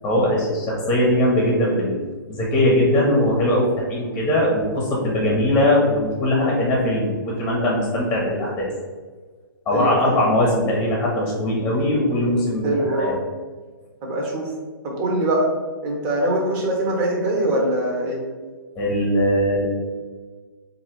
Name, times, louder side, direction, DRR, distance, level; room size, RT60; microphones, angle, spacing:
voice 1, 0.0-2.0 2.3-8.7 9.6-12.7 12.9-13.1 18.7-19.7, left 1 dB, 15° left, -3 dB, 1.0 m, -20 dB
voice 2, 9.7-10.2 12.6-13.2 14.0-14.5 14.8-15.5 15.8-18.2, right 1 dB, 35° right, -1 dB, 1.2 m, -23 dB
3.7 x 2.8 x 4.6 m, 1.4 s
hypercardioid pair, 135°, 12 cm